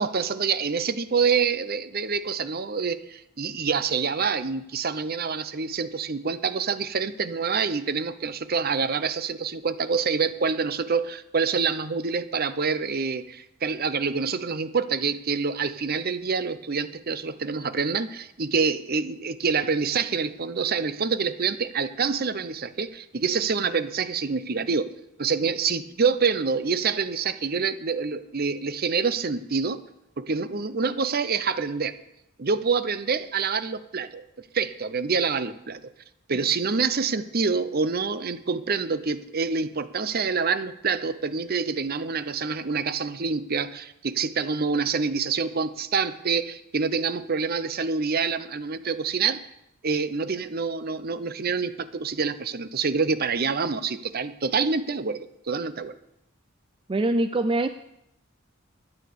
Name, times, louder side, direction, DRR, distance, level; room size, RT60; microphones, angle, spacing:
voice 1, 0.0-24.9 25.2-29.8 30.2-32.0 32.4-34.2 34.5-35.8 36.3-49.4 49.8-55.9, right 5 dB, 50° right, 13 dB, 0.8 m, -26 dB
voice 2, 56.9-57.7, right 2 dB, 25° right, 10 dB, 0.4 m, -23 dB
12.5 x 10.0 x 6.8 m, 0.82 s
head